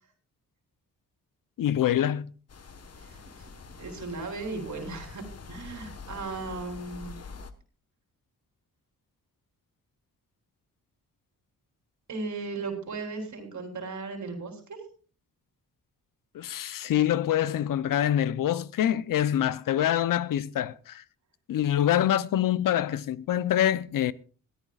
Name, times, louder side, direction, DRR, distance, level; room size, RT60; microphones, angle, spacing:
voice 1, 1.6-2.3 16.3-21.0 21.5-24.1, left 11 dB, 75° left, 0.7 m, -25 dB
sound 1, 2.5-7.5, left 5 dB, 50° left, 1.4 m, -45 dB
voice 2, 3.8-7.2 12.1-14.8, right 3 dB, 60° right, 3.7 m, -36 dB
21.0 x 13.5 x 2.4 m
cardioid pair, 80°, 33 cm